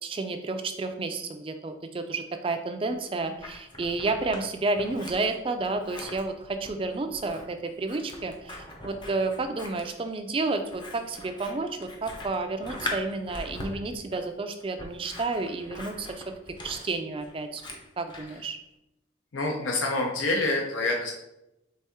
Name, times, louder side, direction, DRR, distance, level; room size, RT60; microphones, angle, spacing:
voice 1, 0.0-16.2 16.6-17.6 18.0-18.6, right 3 dB, 30° right, 7 dB, 0.3 m, -31 dB
Scissors, 2.9-4.4 4.7-18.4, left 1 dB, 25° left, 0.6 m, -41 dB
voice 2, 19.3-21.1, left 2 dB, 90° left, 1 dB, 0.6 m, -27 dB
4.2 x 3.4 x 3.5 m, 0.90 s
head